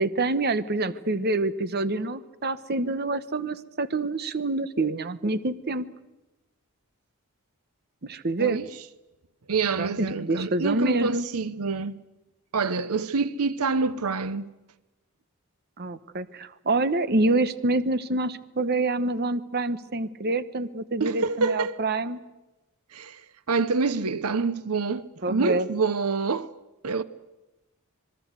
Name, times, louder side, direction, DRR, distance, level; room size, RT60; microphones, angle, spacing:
voice 1, 0.0-5.8 8.0-8.6 9.8-11.3 15.8-22.2 25.2-25.7, right 2 dB, 45° right, 1.0 m, -26 dB
voice 2, 9.5-12.0 12.5-14.5 21.0-21.8 22.9-26.5 26.8-27.0, right 4 dB, 80° right, 0.9 m, -27 dB
26.0 x 21.5 x 8.1 m
head